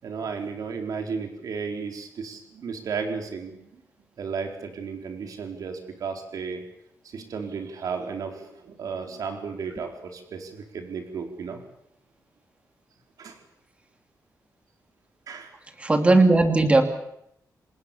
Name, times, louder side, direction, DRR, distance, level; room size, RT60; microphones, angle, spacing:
voice 1, 0.0-3.8 4.2-6.6 7.0-11.6 13.2-13.4 15.3-15.5, right 5 dB, 70° right, 4 dB, 4.4 m, -34 dB
voice 2, 15.8-16.8, right 2 dB, 20° right, 6 dB, 2.6 m, -17 dB
28.0 x 20.5 x 7.1 m, 0.77 s
wide cardioid pair, 175°, 6 cm